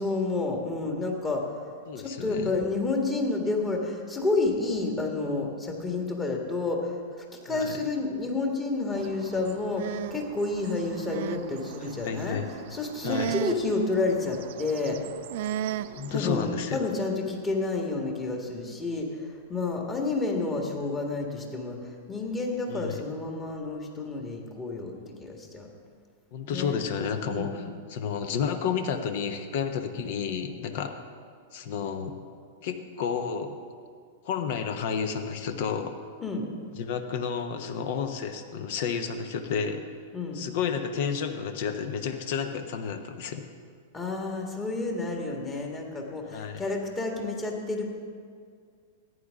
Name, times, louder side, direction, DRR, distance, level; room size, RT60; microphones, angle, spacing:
voice 1, 0.0-1.7 2.0-7.0 7.4-12.4 12.7-15.0 16.1-25.7 26.5-26.8 27.2-27.7 36.2-36.5 40.1-40.4 43.9-48.0, left 3 dB, 20° left, 1 dB, 1.9 m, -30 dB
voice 2, 1.9-2.5 7.5-7.8 12.0-12.5 13.0-13.3 16.0-16.8 22.7-22.9 26.3-27.6 27.9-31.0 31.5-32.1 32.6-33.6 34.2-35.9 36.8-39.8 40.3-43.4 46.3-46.6, left 6 dB, 55° left, 8 dB, 1.0 m, -31 dB
sound 1, 8.9-16.5, right 11 dB, 55° right, 0.4 m, -37 dB
14.5 x 9.7 x 3.7 m, 2.1 s
figure-of-eight pair, 100°, 0 cm